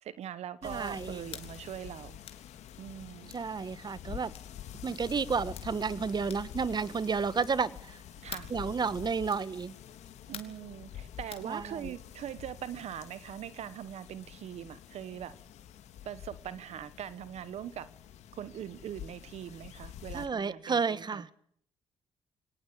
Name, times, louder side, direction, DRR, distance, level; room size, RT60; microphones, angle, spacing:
voice 1, 0.0-2.2 2.8-3.3 8.2-8.5 10.3-15.3 16.0-17.9 18.3-21.2, right 10 dB, 70° right, 15 dB, 1.1 m, -42 dB
sound 1, 0.6-20.3, left 10 dB, 85° left, 2.3 m, -47 dB
voice 2, 0.6-1.2 3.3-4.3 4.8-8.0 8.5-9.7 11.4-11.9 20.1-21.3, right 5 dB, 40° right, 16 dB, 1.4 m, -31 dB
sound 2, 1.3-1.5 2.2-2.5 3.3-3.5 4.3-4.5 5.3-5.7 6.3-6.6 7.3-7.7 8.3-8.6 9.3-9.5 10.3-10.6 11.3-11.5, left 7 dB, 60° left, 3.5 m, -46 dB
25.0 x 18.5 x 8.7 m, 0.64 s
cardioid pair, 70°, 11 cm